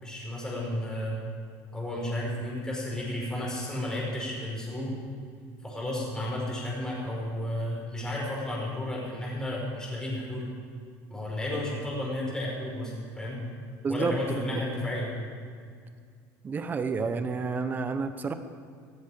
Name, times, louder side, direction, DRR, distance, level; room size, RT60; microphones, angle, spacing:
voice 1, 0.0-1.2 1.7-4.9 5.6-10.5 11.1-13.4 13.9-15.1, left 1 dB, 10° left, -5 dB, 5.2 m, -32 dB
voice 2, 13.8-14.4 16.4-18.3, right 4 dB, 25° right, 9 dB, 1.0 m, -30 dB
15.5 x 15.0 x 5.1 m, 2.1 s
cardioid pair, 140°, 8 cm